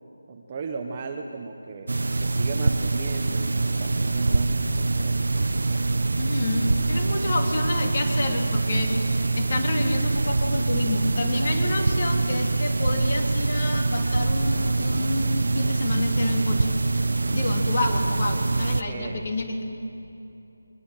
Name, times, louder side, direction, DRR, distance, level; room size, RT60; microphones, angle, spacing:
voice 1, 0.3-5.3 18.9-19.2, right 4 dB, 20° right, 4 dB, 1.1 m, -36 dB
sound 1, 1.9-18.8, right 3 dB, 65° right, 1.2 m, -24 dB
voice 2, 6.2-16.7 17.3-19.6, left 2 dB, 30° left, 3 dB, 2.9 m, -29 dB
24.5 x 24.0 x 9.1 m, 2.8 s
figure-of-eight pair, 175°, 0 cm